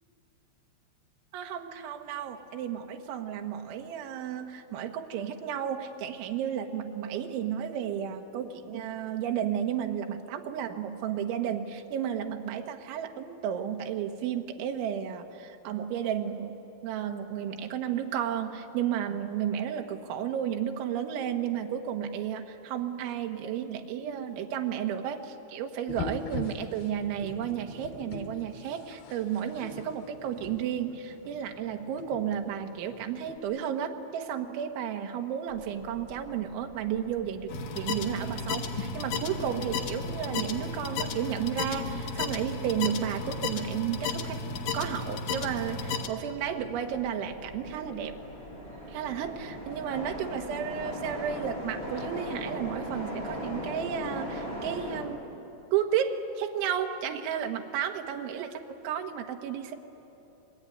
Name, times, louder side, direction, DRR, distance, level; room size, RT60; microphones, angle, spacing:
voice 1, 1.3-44.4 44.7-48.2 48.9-55.2 55.7-59.7, right 9 dB, 75° right, 5 dB, 3.6 m, -33 dB
sound 1, 25.9-33.4, left 4 dB, 60° left, 3.1 m, -42 dB
Subway Passing Train, 35.5-55.0, equal, 10° left, 6.7 m, -41 dB
sound 2, 37.5-46.1, left 4 dB, 85° left, 1.7 m, -34 dB
28.5 x 21.0 x 9.4 m, 3.0 s
omnidirectional pair, 5.7 m